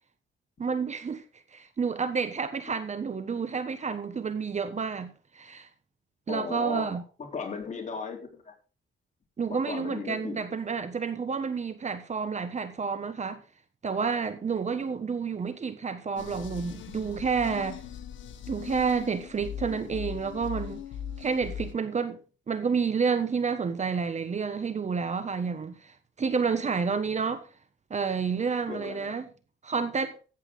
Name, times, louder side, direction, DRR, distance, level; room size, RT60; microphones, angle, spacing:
voice 1, 0.6-1.2 1.5-5.7 6.3-7.0 9.4-13.4 13.8-17.8 18.5-20.8 21.2-22.2 22.5-27.4 27.9-29.3 29.6-30.1, right 5 dB, 35° right, 1.4 m, -30 dB
voice 2, 6.3-6.9 7.2-8.5 9.5-10.4 14.8-15.0 28.7-29.2, left 5 dB, 35° left, 3.9 m, -37 dB
sound 1, 16.2-21.7, left 9 dB, 70° left, 1.6 m, -39 dB
14.5 x 8.3 x 3.9 m
cardioid pair, 90°, 20 cm